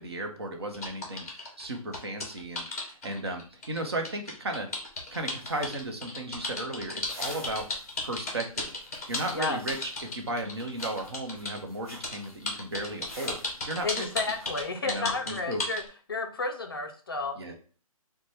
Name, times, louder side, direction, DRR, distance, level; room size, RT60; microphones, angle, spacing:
voice 1, 0.0-4.7 5.1-7.7 8.0-8.7 9.1-14.1 14.8-15.6 17.4-17.6, right 1 dB, 45° right, 4 dB, 0.7 m, -35 dB
sound 1, 0.7-11.6 12.0-15.9, left 2 dB, 25° left, 0.8 m, -35 dB
sound 2, 4.9-14.7, left 1 dB, 5° left, 1.2 m, -51 dB
voice 2, 13.8-15.8 16.1-17.5, left 3 dB, 40° left, 4 dB, 0.4 m, -32 dB
4.1 x 2.2 x 3.2 m, 0.41 s
hypercardioid pair, 175°, 19 cm